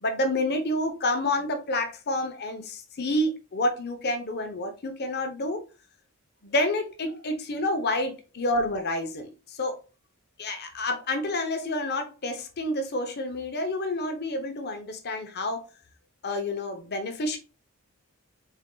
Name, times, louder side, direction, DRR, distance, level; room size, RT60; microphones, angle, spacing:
voice 1, 0.0-5.6 6.4-9.7 10.4-15.6 16.2-17.4, left 1 dB, 50° left, 0.8 m, -29 dB
4.4 x 3.7 x 2.3 m
head